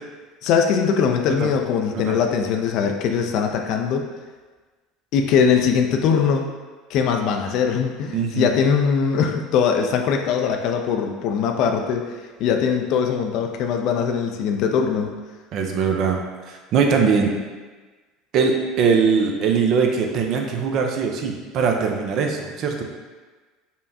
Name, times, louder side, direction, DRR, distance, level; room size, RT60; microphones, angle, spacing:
voice 1, 0.4-4.1 5.1-6.4 6.9-15.1, left 6 dB, 60° left, 4 dB, 0.4 m, -21 dB
voice 2, 8.1-8.5 15.5-16.2 16.5-17.3 18.3-22.8, right 5 dB, 55° right, 3 dB, 0.5 m, -21 dB
5.4 x 2.2 x 2.7 m, 1.3 s
hypercardioid pair, 75°, 0 cm